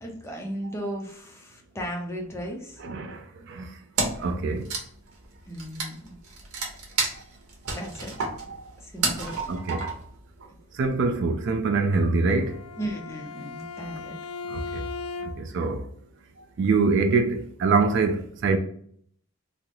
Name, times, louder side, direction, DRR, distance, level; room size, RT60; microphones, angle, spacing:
voice 1, 0.0-2.8 5.5-6.2 7.7-8.1 8.8-9.4 12.8-14.2, equal, 10° left, 0.5 m, -35 dB
voice 2, 2.8-3.2 3.5-3.7 4.0-4.6 9.5-9.8 10.8-12.5 14.5-14.8 15.4-15.8 16.6-18.6, right 4 dB, 55° right, 0.3 m, -24 dB
Wood, 4.0-4.3 4.6-10.2, right 3 dB, 80° right, 0.9 m, -30 dB
Bowed string instrument, 12.3-15.7, left 4 dB, 85° left, 0.4 m, -38 dB
3.6 x 2.0 x 2.9 m
head